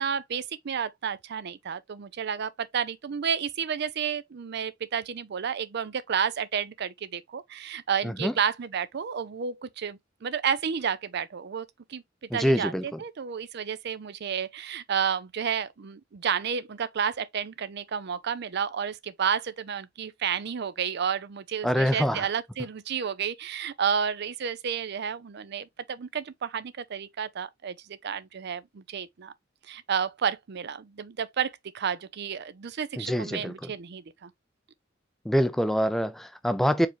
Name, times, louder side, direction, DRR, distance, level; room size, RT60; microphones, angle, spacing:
voice 1, 0.0-12.0 12.3-29.3 29.6-34.3, right 7 dB, 60° right, 0.5 m, -31 dB
voice 2, 12.3-12.8 21.6-22.2 33.0-33.5 35.3-36.9, equal, ahead, 0.4 m, -25 dB
4.7 x 3.5 x 3.1 m
head